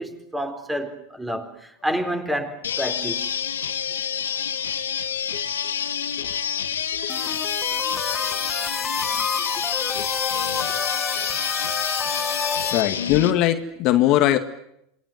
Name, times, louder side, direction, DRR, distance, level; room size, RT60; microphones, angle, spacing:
voice 1, 0.0-3.3 9.6-9.7, equal, 10° right, 4.4 m, -29 dB
sound 1, 2.6-13.3, left 8 dB, 85° left, 1.8 m, -28 dB
voice 2, 6.9-7.4 8.1-8.4 9.4-10.2 11.2-11.3 12.2-12.3 12.7-14.4, left 13 dB, 50° left, 1.9 m, -23 dB
sound 2, 7.1-12.8, left 5 dB, 20° left, 1.5 m, -28 dB
27.5 x 20.5 x 9.4 m
hypercardioid pair, 95°, 0 cm